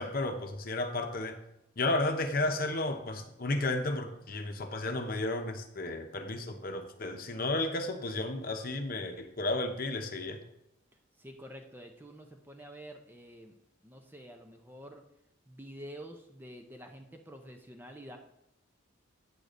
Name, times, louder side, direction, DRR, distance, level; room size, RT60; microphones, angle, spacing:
voice 1, 0.0-1.4 1.8-10.4, left 2 dB, 45° left, 6 dB, 0.9 m, -33 dB
voice 2, 11.2-13.6 13.8-15.0 15.5-18.2, equal, 10° right, 4 dB, 0.6 m, -48 dB
9.3 x 3.8 x 6.7 m, 0.85 s
head